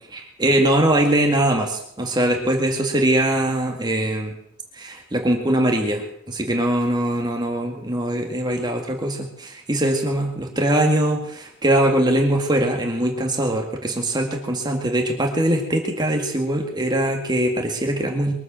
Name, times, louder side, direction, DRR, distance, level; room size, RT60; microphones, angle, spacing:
voice 1, 0.1-4.3 4.8-18.3, right 1 dB, 20° right, 2 dB, 2.0 m, -22 dB
22.5 x 7.9 x 7.6 m, 0.71 s
head